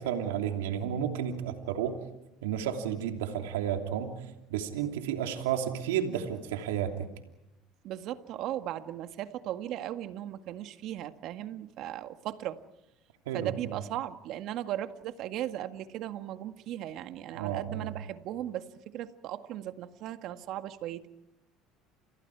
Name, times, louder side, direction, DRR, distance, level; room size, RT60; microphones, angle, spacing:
voice 1, 0.0-2.0 2.4-4.1 4.5-6.9 13.3-13.8 17.3-17.9, right 9 dB, 90° right, 4 dB, 3.0 m, -32 dB
voice 2, 7.8-12.6 13.3-21.1, right 12 dB, 65° right, 9 dB, 1.9 m, -37 dB
30.0 x 29.0 x 4.8 m, 0.87 s
supercardioid pair, 90°, 0 cm